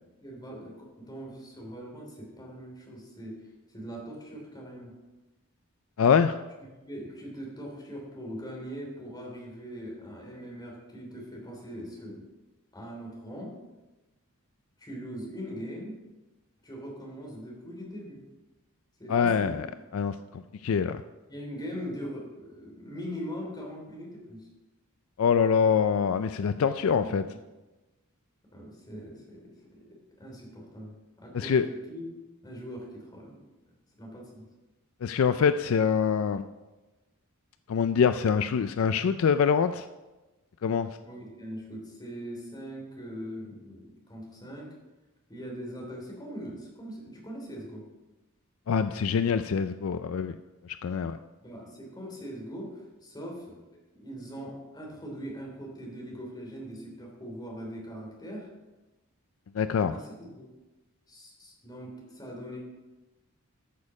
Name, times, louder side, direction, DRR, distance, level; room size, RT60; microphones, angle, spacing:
voice 1, 0.2-3.4 3.7-4.9 6.9-12.3 12.7-13.5 14.8-16.0 16.6-18.2 19.0-19.6 21.3-24.5 26.9-27.4 28.5-29.8 30.2-32.0 32.4-33.4 34.0-34.5 41.0-44.7 45.3-47.9 51.4-53.6 53.9-58.5 59.9-60.5 61.1-62.6, equal, 20° left, -1 dB, 3.0 m, -41 dB
voice 2, 6.0-6.4 19.1-19.7 19.9-21.0 25.2-27.2 31.3-31.7 35.0-36.5 37.7-39.9 40.6-40.9 48.7-50.3 50.6-51.2 59.5-59.9, left 6 dB, 65° left, 11 dB, 0.4 m, -25 dB
13.5 x 6.5 x 4.8 m, 1.1 s
head